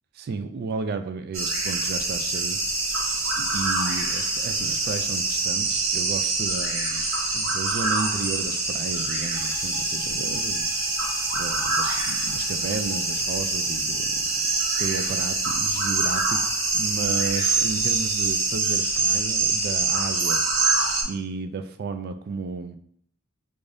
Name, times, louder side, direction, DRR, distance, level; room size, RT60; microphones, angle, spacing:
voice 1, 0.2-2.6 3.0-7.0 7.3-10.7 11.1-14.4 14.8-16.2 16.7-22.8, right 4 dB, 45° right, 8 dB, 0.3 m, -33 dB
sound 1, 1.3-21.0, right 3 dB, 65° right, 0.8 m, -25 dB
sound 2, 9.3-15.5, left 1 dB, 35° left, 1.4 m, -42 dB
4.8 x 2.5 x 2.6 m, 0.63 s
head